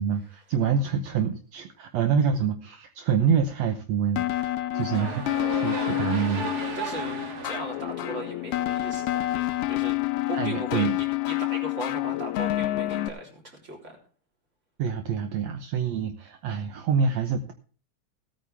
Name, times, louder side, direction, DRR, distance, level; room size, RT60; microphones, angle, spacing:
voice 1, 0.0-6.5 10.3-11.0 14.8-17.5, right 6 dB, 70° right, 7 dB, 2.0 m, -26 dB
sound 1, 4.2-13.1, left 17 dB, 75° left, 1.3 m, -28 dB
sound 2, 4.7-8.9, right 4 dB, 40° right, 1.5 m, -35 dB
voice 2, 6.8-10.0 10.3-13.9, right 1 dB, 25° right, 1 dB, 3.6 m, -38 dB
17.5 x 9.1 x 3.5 m, 0.41 s
omnidirectional pair, 3.4 m